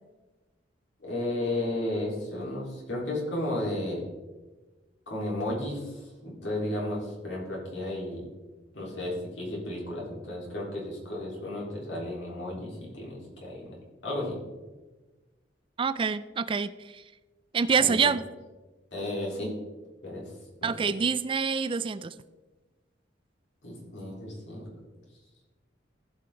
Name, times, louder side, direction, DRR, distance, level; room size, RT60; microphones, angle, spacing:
voice 1, 1.0-4.0 5.1-5.9 6.2-8.2 8.7-13.7 14.0-14.4 17.8-17.9 18.9-19.5 20.0-20.2 20.6-20.7 23.6-24.7, left 1 dB, 80° left, -4 dB, 3.8 m, -33 dB
voice 2, 15.8-16.7 17.5-18.2 20.6-22.1, right 5 dB, 30° right, 14 dB, 0.3 m, -26 dB
16.0 x 5.8 x 3.8 m, 1.2 s
head